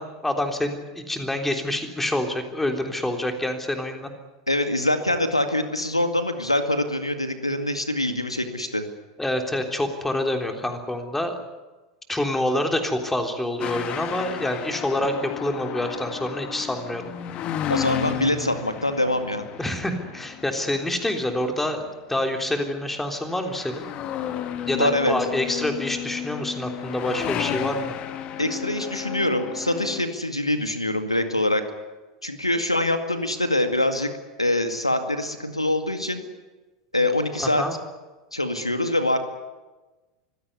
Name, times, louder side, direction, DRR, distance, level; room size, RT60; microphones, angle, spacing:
voice 1, 0.0-4.1 9.2-11.4 12.1-17.0 19.6-23.9 24.7-27.9 37.4-37.8, left 1 dB, 5° left, 5 dB, 3.5 m, -27 dB
voice 2, 4.5-8.8 17.7-19.5 24.7-25.1 28.4-31.6 32.2-34.1 34.4-36.2 36.9-37.6 38.3-39.2, left 1 dB, 90° left, 8 dB, 2.1 m, -24 dB
sound 1, 13.6-21.9 22.6-22.9 23.2-30.0, left 10 dB, 35° left, 1.6 m, -33 dB
25.0 x 16.5 x 9.7 m, 1.2 s
figure-of-eight pair, 85°, 3 cm